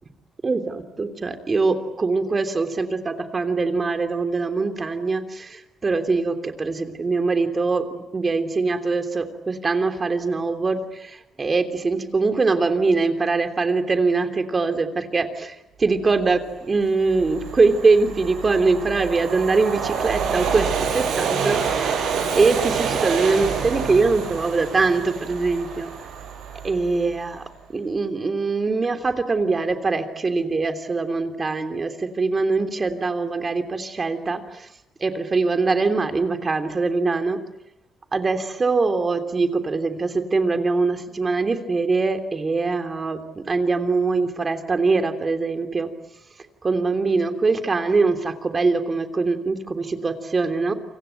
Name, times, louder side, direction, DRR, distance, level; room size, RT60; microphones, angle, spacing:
voice 1, 0.4-25.9 26.6-27.4 27.7-34.7 35.0-37.4 38.1-45.9 46.6-50.7, right 3 dB, 30° right, 6 dB, 3.2 m, -23 dB
Train, 16.3-16.4 16.8-27.2, right 6 dB, 80° right, 6.1 m, -27 dB
29.0 x 25.0 x 8.0 m, 0.89 s
cardioid pair, 90°, 0 cm